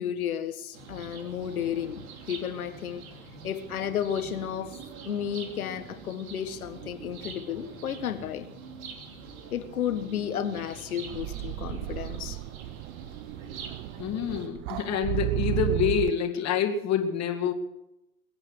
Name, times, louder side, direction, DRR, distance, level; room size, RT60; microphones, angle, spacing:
voice 1, 0.0-3.0 3.4-4.7 5.0-8.5 9.5-12.4, left 9 dB, 85° left, 9 dB, 1.7 m, -32 dB
sound 1, 0.7-14.5, right 5 dB, 80° right, 2.8 m, -44 dB
sound 2, 11.1-16.1, right 21 dB, 55° right, 0.5 m, -33 dB
voice 2, 14.0-17.5, left 7 dB, 40° left, 3 dB, 2.3 m, -27 dB
22.5 x 8.8 x 6.6 m, 0.92 s
hypercardioid pair, 90°, 42 cm